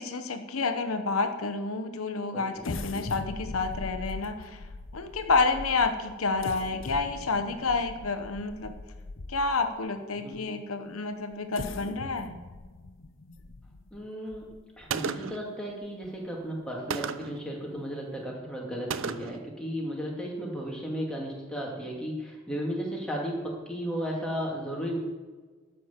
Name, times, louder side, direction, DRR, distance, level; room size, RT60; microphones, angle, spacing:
voice 1, 0.0-4.7 4.9-8.7 9.3-12.4, left 3 dB, 85° left, 7 dB, 0.9 m, -29 dB
voice 2, 2.3-2.7 10.2-10.4 13.9-14.5 14.8-25.0, equal, 5° left, -3 dB, 2.4 m, -34 dB
sound 1, 2.6-9.7 10.3-10.4 11.3-14.8 15.3-15.4 15.8-16.1, left 3 dB, 65° left, 0.7 m, -40 dB
Gunshot gunfire, 14.9-15.5 16.9-17.4 18.9-19.5, right 6 dB, 70° right, 0.6 m, -33 dB
12.5 x 6.0 x 7.3 m, 1.4 s
head